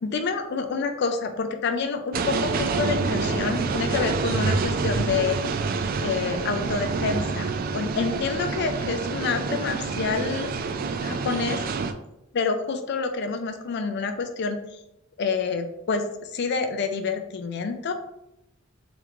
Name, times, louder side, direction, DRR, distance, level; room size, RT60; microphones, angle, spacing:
voice 1, 0.0-5.4 6.0-10.5 11.0-11.7 12.3-14.6 15.2-17.9, left 5 dB, 55° left, 6 dB, 0.4 m, -28 dB
sound 1, 2.1-11.9, right 4 dB, 45° right, 0.3 m, -27 dB
3.5 x 3.0 x 3.6 m, 0.87 s
head